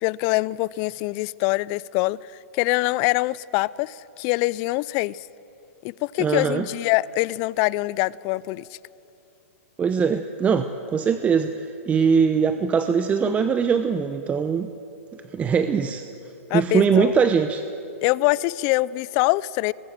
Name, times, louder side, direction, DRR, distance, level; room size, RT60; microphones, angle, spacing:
voice 1, 0.0-2.2 2.5-5.2 5.8-8.6 16.5-17.2 18.0-19.7, left 20 dB, 40° left, 0.4 m, -24 dB
voice 2, 6.2-6.6 9.8-14.7 15.3-16.0 16.5-17.6, right 6 dB, 15° right, 0.8 m, -21 dB
24.5 x 20.0 x 7.7 m
hypercardioid pair, 130°, 8 cm